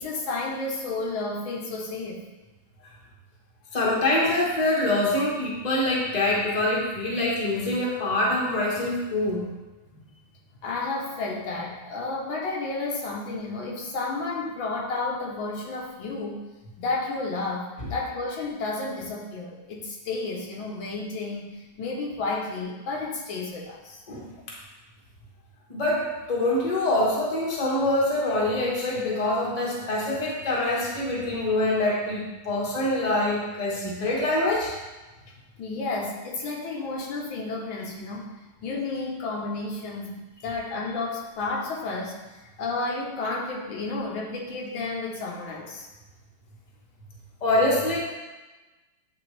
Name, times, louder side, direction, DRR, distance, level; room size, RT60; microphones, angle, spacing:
voice 1, 0.0-2.2 9.9-10.0 10.6-16.4 16.8-24.0 35.3-38.3 38.6-45.9, left 3 dB, 75° left, -2 dB, 1.6 m, -32 dB
voice 2, 3.7-9.4 24.1-24.2 25.7-34.7 47.4-48.0, left 1 dB, 25° left, -4 dB, 1.1 m, -25 dB
8.7 x 4.0 x 3.2 m, 1.2 s
omnidirectional pair, 2.2 m